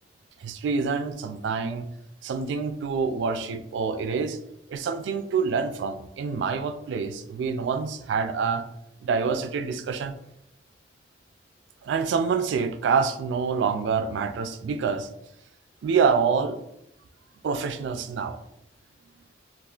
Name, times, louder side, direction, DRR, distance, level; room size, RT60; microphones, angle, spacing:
voice 1, 0.4-1.9 2.2-4.4 4.7-8.6 9.0-10.2 11.8-15.1 15.8-16.6 17.4-18.4, right 5 dB, 70° right, 9 dB, 0.3 m, -26 dB
2.4 x 2.4 x 3.6 m, 0.79 s
head